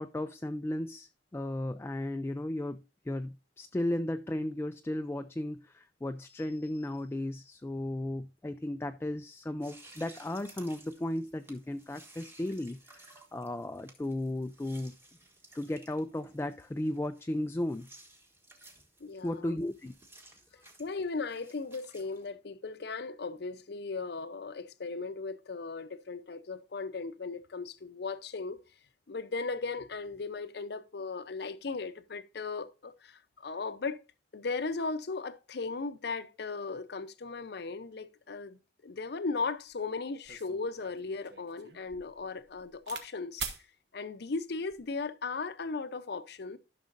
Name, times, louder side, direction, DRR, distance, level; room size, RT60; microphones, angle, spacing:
voice 1, 0.0-2.8 3.1-14.9 15.5-17.9 19.2-19.9 20.5-20.6, left 1 dB, 15° left, 0.3 m, -35 dB
sound 1, 9.6-22.3, right 2 dB, 15° right, 1.3 m, -57 dB
voice 2, 19.0-19.5 20.8-28.6 29.1-34.0 34.3-43.4 43.9-46.6, left 4 dB, 65° left, 0.6 m, -37 dB
sound 2, 39.7-39.8 40.2-43.1 43.4-43.6 44.5-44.9, right 6 dB, 65° right, 1.1 m, -43 dB
12.5 x 6.2 x 2.5 m
head